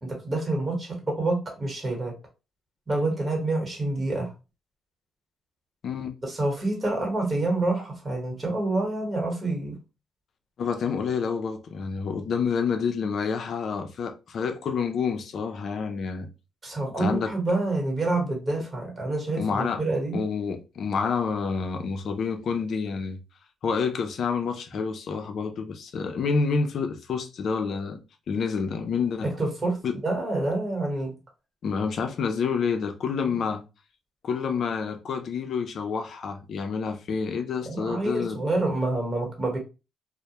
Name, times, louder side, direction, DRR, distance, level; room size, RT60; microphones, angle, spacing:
voice 1, 0.0-2.1 2.9-4.3 6.2-9.8 16.6-20.2 29.2-31.1 37.6-39.6, right 2 dB, 25° right, 1.1 m, -27 dB
voice 2, 5.8-6.2 10.6-16.3 17.0-17.3 19.4-19.8 20.1-23.2 23.6-28.0 28.3-29.3 29.8-29.9 31.6-33.6 34.2-38.4, left 5 dB, 60° left, 0.4 m, -28 dB
2.2 x 2.0 x 2.8 m
cardioid pair, 90°, 0 cm